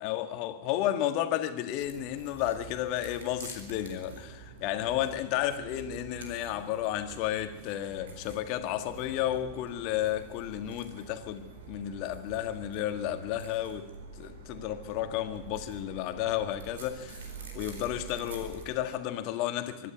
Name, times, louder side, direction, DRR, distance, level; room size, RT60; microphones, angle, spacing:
voice 1, 0.0-13.9 14.2-17.3 17.5-19.9, left 12 dB, 45° left, 1.7 m, -32 dB
sound 1, 1.8-18.7, right 4 dB, 65° right, 4.2 m, -47 dB
24.5 x 12.0 x 9.4 m
figure-of-eight pair, 90°, 0 cm